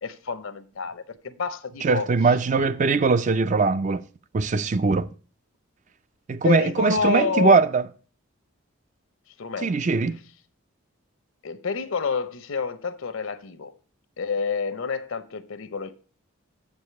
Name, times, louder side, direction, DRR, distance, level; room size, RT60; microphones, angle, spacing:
voice 1, 0.0-2.1 2.5-2.8 6.4-7.6 9.4-9.9 11.4-13.7 14.2-16.0, left 5 dB, 70° left, 0.7 m, -29 dB
voice 2, 1.8-4.1 4.3-5.1 6.3-7.8 9.6-10.2, right 4 dB, 35° right, 0.3 m, -21 dB
7.1 x 4.8 x 6.7 m
head